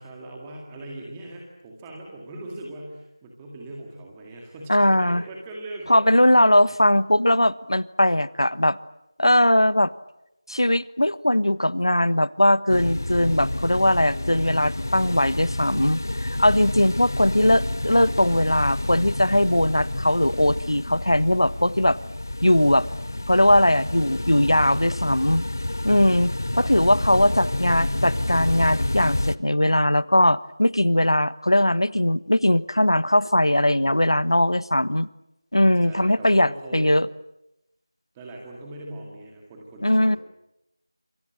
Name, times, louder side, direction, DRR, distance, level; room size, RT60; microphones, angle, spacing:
voice 1, 0.0-6.8 26.5-26.9 35.8-37.0 38.1-40.2, right 1 dB, 5° right, 0 dB, 2.0 m, -40 dB
voice 2, 4.7-5.2 5.9-8.8 9.2-9.9 10.5-22.0 22.4-22.9 23.3-25.5 25.8-35.1 35.5-37.1 39.8-40.2, left 1 dB, 85° left, 17 dB, 1.3 m, -20 dB
sound 1, 12.7-29.4, left 1 dB, 45° left, 1.0 m, -29 dB
28.0 x 24.5 x 7.7 m, 0.86 s
figure-of-eight pair, 175°, 2 cm